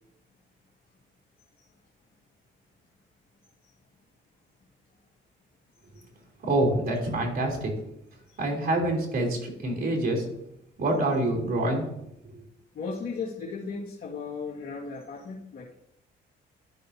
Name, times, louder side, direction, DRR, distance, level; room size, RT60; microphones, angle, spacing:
voice 1, 6.4-7.7 8.4-10.2 10.8-11.8, right 1 dB, 50° right, 0 dB, 3.4 m, -26 dB
voice 2, 12.7-15.7, left 4 dB, 50° left, -5 dB, 2.0 m, -36 dB
13.0 x 6.4 x 2.8 m, 0.81 s
cardioid pair, 90°, 20 cm